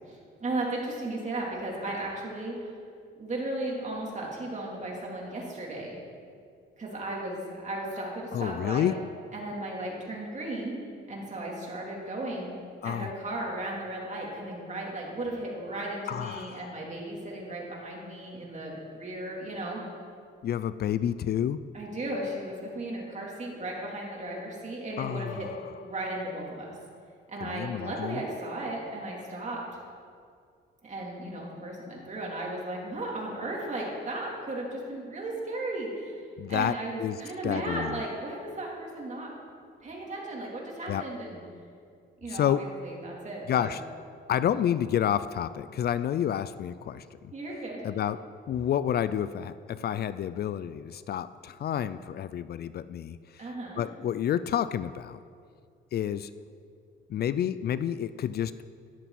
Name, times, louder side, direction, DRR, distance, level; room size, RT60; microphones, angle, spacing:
voice 1, 0.4-2.7 3.2-6.0 6.8-8.9 9.3-10.8 11.1-12.6 12.8-19.8 21.7-25.5 25.8-26.7 27.3-29.6 30.8-36.2 36.5-39.3 39.8-41.4 42.2-43.7 47.3-47.9 53.4-53.8, right 2 dB, 35° right, -3 dB, 3.4 m, -35 dB
voice 2, 8.3-8.9 12.8-13.1 16.1-16.8 20.4-21.6 25.0-25.6 27.4-28.2 36.4-37.2 37.4-38.0 40.9-41.0 42.3-42.6 43.5-43.8 44.3-47.3 47.8-53.4 53.8-55.2 55.9-56.3 57.1-58.6, left 10 dB, 55° left, 15 dB, 0.4 m, -29 dB
14.0 x 11.0 x 4.2 m, 2.3 s
cardioid pair, 90°, 20 cm